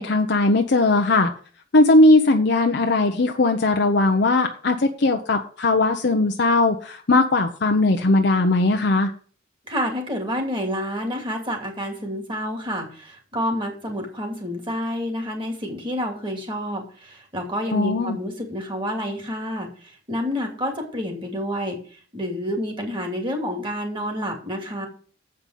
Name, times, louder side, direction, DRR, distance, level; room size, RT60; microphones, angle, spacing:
voice 1, 0.0-1.3 1.7-9.1 17.7-18.2, left 2 dB, 60° left, 4 dB, 0.7 m, -19 dB
voice 2, 9.6-24.9, equal, 25° right, 2 dB, 2.6 m, -29 dB
7.8 x 5.4 x 7.6 m, 0.43 s
head